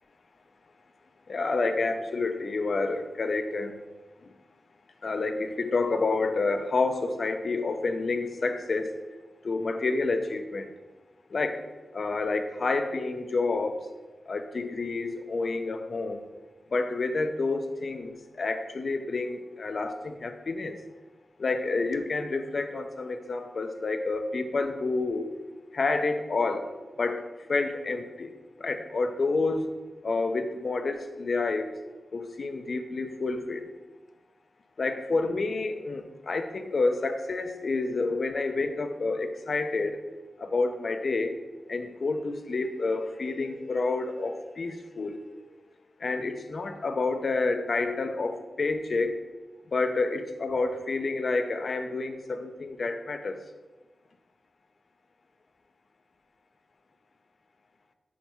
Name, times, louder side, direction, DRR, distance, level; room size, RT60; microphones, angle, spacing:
voice 1, 1.3-3.7 5.0-8.9 9.4-10.7 11.3-11.6 11.9-13.8 14.3-16.2 16.7-20.8 21.4-25.2 25.7-26.6 27.0-28.3 28.6-29.7 30.0-31.7 32.1-33.7 34.8-40.0 40.4-41.3 41.7-45.2 46.0-49.2 49.7-53.4, left 3 dB, 55° left, 8 dB, 0.6 m, -29 dB
7.2 x 3.5 x 5.8 m, 1.2 s
wide cardioid pair, 125°, 0 cm